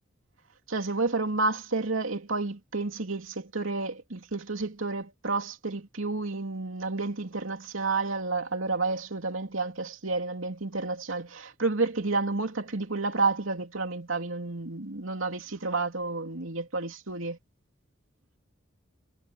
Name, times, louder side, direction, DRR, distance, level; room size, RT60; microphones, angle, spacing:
voice 1, 0.7-17.4, right 3 dB, 80° right, 2.9 m, -30 dB
head